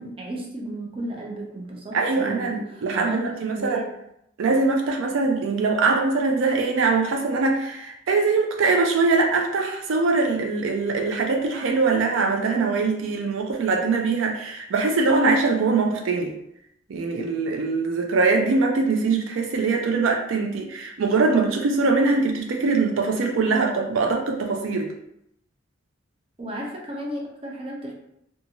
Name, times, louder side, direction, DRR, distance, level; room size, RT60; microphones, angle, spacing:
voice 1, 0.0-3.3 3.5-4.0 26.4-27.9, right 1 dB, 30° right, -2 dB, 0.5 m, -34 dB
voice 2, 1.9-3.8 4.4-16.3 16.9-24.9, right 4 dB, 80° right, 2 dB, 0.4 m, -22 dB
2.6 x 2.4 x 2.8 m, 0.78 s
head